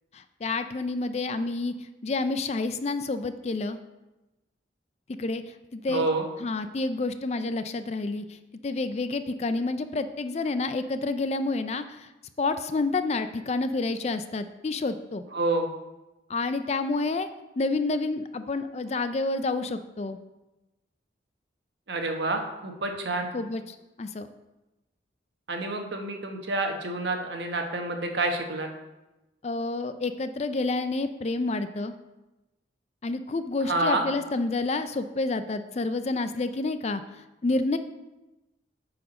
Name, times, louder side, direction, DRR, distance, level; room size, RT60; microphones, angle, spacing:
voice 1, 0.1-1.7 2.0-3.8 5.2-5.4 5.7-6.1 6.4-12.1 12.4-15.2 16.3-17.3 17.6-20.2 23.2-24.3 29.4-31.9 33.0-37.8, left 3 dB, 35° left, 11 dB, 0.4 m, -29 dB
voice 2, 5.9-6.3 15.3-15.7 21.9-23.3 25.5-28.7 33.7-34.0, right 2 dB, 70° right, 4 dB, 1.1 m, -28 dB
8.7 x 4.7 x 5.3 m, 1.0 s
head